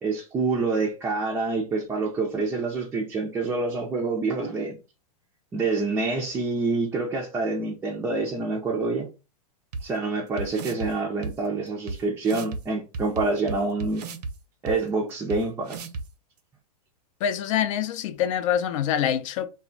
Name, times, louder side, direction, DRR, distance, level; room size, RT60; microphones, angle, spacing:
voice 1, 0.0-4.8 5.5-9.1 9.8-14.1 14.6-15.9, right 3 dB, 10° right, 0.4 m, -27 dB
sound 1, 9.7-9.8 10.4-10.9 11.2-11.3 11.9-12.0 12.2-12.6 12.9-14.3 14.7-14.8 15.3-15.4 15.7-16.0, right 3 dB, 75° right, 0.6 m, -33 dB
voice 2, 17.2-19.5, left 9 dB, 50° left, 0.4 m, -25 dB
2.2 x 2.1 x 3.8 m
hypercardioid pair, 135°, 21 cm